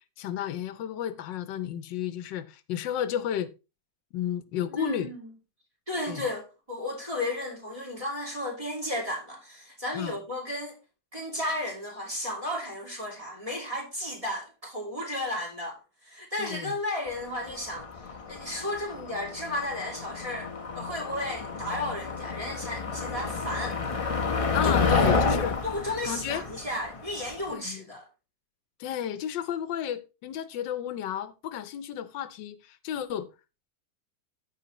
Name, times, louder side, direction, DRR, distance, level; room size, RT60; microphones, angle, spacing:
voice 1, 0.2-3.5 4.1-5.1 6.1-6.3 9.9-10.2 16.4-16.8 24.5-25.6 26.0-26.4 27.5-27.8 28.8-33.3, left 10 dB, 90° left, 1.4 m, -32 dB
voice 2, 4.7-5.2 5.9-10.8 11.1-17.9 18.3-23.8 24.6-25.1 25.6-28.1, left 1 dB, 20° right, 2.8 m, -34 dB
Motor vehicle (road), 17.1-27.5, left 4 dB, 30° left, 0.6 m, -30 dB
13.5 x 5.4 x 2.9 m
omnidirectional pair, 1.9 m